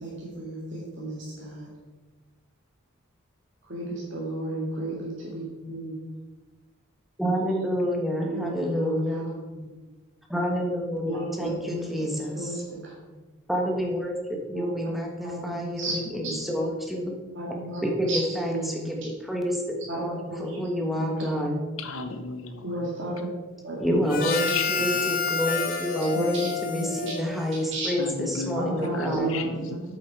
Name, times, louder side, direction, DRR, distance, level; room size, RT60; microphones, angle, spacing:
voice 1, 0.0-1.7 3.7-6.0 8.2-9.6 11.0-12.6 14.5-14.7 15.2-15.9 16.2-16.4 17.4-17.8 18.1-18.7 19.9-20.4 20.8-21.5 22.6-23.2 23.6-23.8 24.2-24.4 26.1-27.2 27.7-27.9 28.5-29.4, right 2 dB, 55° right, -5 dB, 2.0 m, -33 dB
voice 2, 7.2-9.3 10.3-12.6 13.5-17.1 17.8-21.6 23.8-29.4, equal, ahead, 0 dB, 1.2 m, -28 dB
voice 3, 21.8-22.8 24.1-24.7 28.0-29.8, left 4 dB, 75° left, 8 dB, 0.9 m, -34 dB
Harmonica, 24.1-27.9, left 5 dB, 40° left, 0.9 m, -30 dB
8.4 x 7.4 x 4.6 m, 1.3 s
head